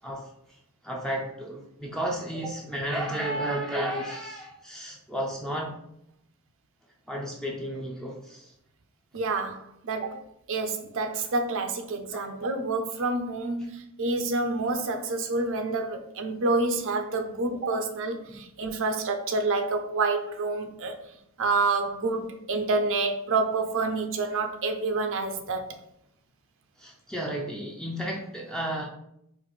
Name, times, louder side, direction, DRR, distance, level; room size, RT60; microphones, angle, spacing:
voice 1, 0.8-5.8 7.1-8.5 12.1-12.5 18.3-18.4 26.8-28.8, right 1 dB, 5° left, 0.4 m, -33 dB
voice 2, 9.1-10.2 10.5-21.0 21.4-25.8, right 3 dB, 60° right, 0.5 m, -28 dB
4.5 x 2.5 x 4.0 m
head